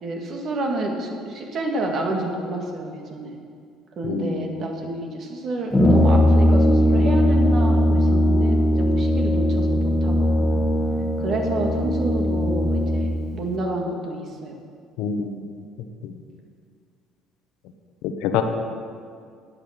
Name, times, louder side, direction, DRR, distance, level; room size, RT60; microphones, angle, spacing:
voice 1, 0.0-3.4 4.0-10.3 11.2-14.6, right 2 dB, 50° right, 2 dB, 2.0 m, -29 dB
voice 2, 4.0-4.6 15.0-15.5 16.0-16.1 18.0-18.4, left 7 dB, 75° left, 7 dB, 0.9 m, -26 dB
Brass instrument, 5.7-13.2, left 1 dB, 10° left, 1.4 m, -19 dB
10.5 x 8.4 x 6.6 m, 2.2 s
supercardioid pair, 95°, 0 cm